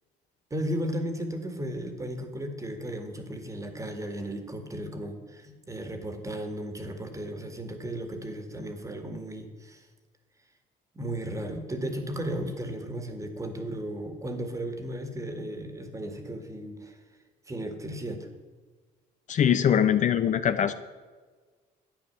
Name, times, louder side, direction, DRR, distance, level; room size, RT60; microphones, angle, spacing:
voice 1, 0.5-9.9 10.9-17.0 17.5-18.3, right 1 dB, 20° right, 7 dB, 1.9 m, -35 dB
voice 2, 19.3-20.7, left 9 dB, 45° left, 11 dB, 0.7 m, -22 dB
12.0 x 8.7 x 6.9 m, 1.4 s
cardioid pair, 110°, 17 cm